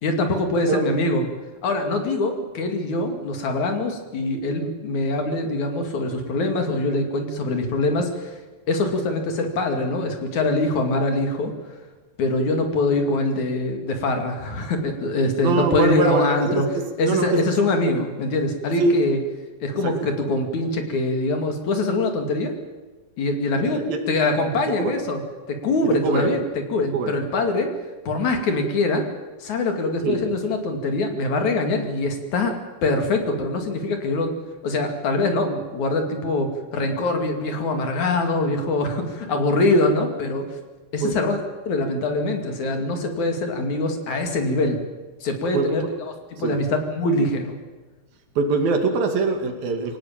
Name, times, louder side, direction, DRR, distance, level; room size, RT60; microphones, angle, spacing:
voice 1, 0.0-1.2 1.6-8.4 8.7-11.5 12.2-16.6 17.0-19.2 19.6-22.5 23.2-25.2 25.5-26.4 26.7-27.7 28.1-29.0 29.4-32.6 32.8-34.3 34.6-40.4 40.9-41.4 41.7-44.8 45.2-46.1 46.4-47.6, left 2 dB, 55° left, 5 dB, 3.7 m, -23 dB
voice 2, 15.4-16.7 17.0-17.5 18.8-19.0 19.8-20.1 23.6-24.0 24.8-24.9 25.8-26.3 26.9-27.2 30.0-30.2 39.3-39.4 41.0-41.2 45.5-45.9 46.4-46.6 48.4-50.0, right 4 dB, 75° right, 5 dB, 4.1 m, -23 dB
23.5 x 18.5 x 8.9 m, 1.2 s
omnidirectional pair, 4.2 m